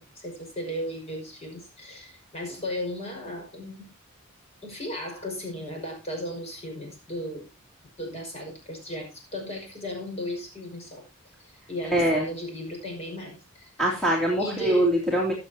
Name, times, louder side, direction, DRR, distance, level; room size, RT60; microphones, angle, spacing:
voice 1, 0.0-3.9 4.6-7.5 8.0-11.0 11.4-13.7 14.4-14.9, left 1 dB, 30° left, 1 dB, 5.8 m, -36 dB
voice 2, 11.9-12.3 13.8-15.3, right 1 dB, ahead, -3 dB, 2.7 m, -23 dB
21.5 x 7.3 x 2.8 m, 0.25 s
head